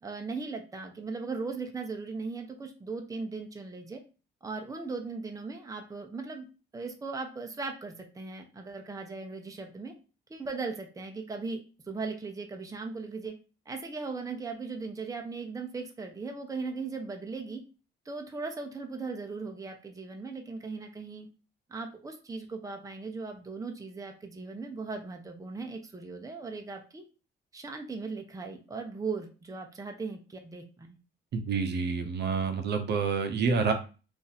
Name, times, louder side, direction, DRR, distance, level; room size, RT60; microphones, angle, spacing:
voice 1, 0.0-4.0 4.4-6.5 6.7-9.9 10.3-11.6 11.9-13.3 13.7-17.6 18.0-21.3 21.7-27.0 27.5-30.9, right 4 dB, 15° right, 4 dB, 0.6 m, -38 dB
voice 2, 31.3-33.7, right 5 dB, 60° right, 6 dB, 0.6 m, -28 dB
2.6 x 2.5 x 4.0 m, 0.33 s
cardioid pair, 90°, 20 cm